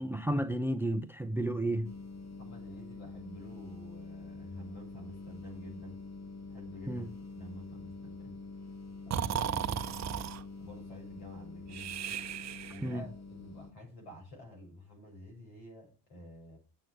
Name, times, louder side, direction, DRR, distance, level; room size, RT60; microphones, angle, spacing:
voice 1, 0.0-1.9 6.9-7.1 12.8-13.1, right 1 dB, 5° right, 0.7 m, -32 dB
sound 1, 1.8-13.7, left 3 dB, 35° left, 1.8 m, -46 dB
voice 2, 2.4-6.0 6.5-8.4 9.0-10.1 10.6-11.9 12.7-16.6, equal, 70° left, 7.8 m, -50 dB
Breathing, 9.1-10.4 11.7-13.0, right 9 dB, 35° right, 0.9 m, -35 dB
8.7 x 7.6 x 7.7 m
figure-of-eight pair, 55°, 46 cm